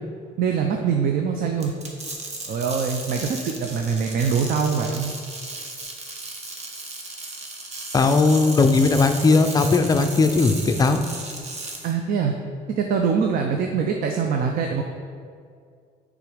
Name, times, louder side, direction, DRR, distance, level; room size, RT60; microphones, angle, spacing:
voice 1, 0.4-1.7 2.5-5.1 11.8-12.3 12.7-14.8, right 6 dB, 55° right, 3 dB, 0.5 m, -23 dB
sound 1, 1.6-11.9, right 2 dB, 40° right, 1.1 m, -35 dB
voice 2, 7.9-11.0, left 3 dB, 20° left, 6 dB, 0.5 m, -18 dB
6.8 x 3.7 x 5.0 m, 2.2 s
cardioid pair, 110°, 17 cm